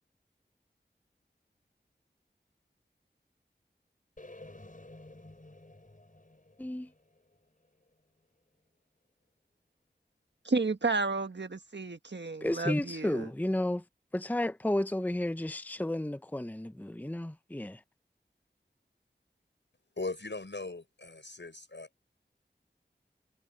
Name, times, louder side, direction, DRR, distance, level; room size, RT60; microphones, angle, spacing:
sound 1, 4.2-8.2, left 2 dB, 45° left, 5.9 m, -53 dB
voice 1, 6.6-6.9 12.4-13.8 14.1-17.8, left 1 dB, 10° left, 0.7 m, -32 dB
voice 2, 10.4-13.3, right 3 dB, 75° right, 1.4 m, -32 dB
voice 3, 20.0-21.9, left 3 dB, 85° left, 6.4 m, -39 dB
wide cardioid pair, 40°, 18 cm